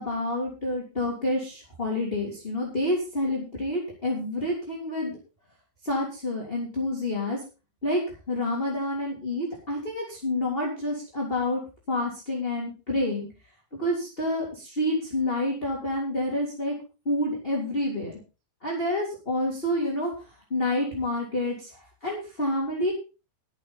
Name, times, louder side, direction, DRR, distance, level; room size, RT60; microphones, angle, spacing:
voice 1, 0.0-5.2 5.8-7.4 7.8-8.0 8.3-11.6 11.9-13.3 13.8-16.7 17.0-18.1 18.6-20.1 20.5-22.9, left 1 dB, 15° left, -2 dB, 2.9 m, -28 dB
21.0 x 7.6 x 4.0 m, 0.31 s
omnidirectional pair, 4.9 m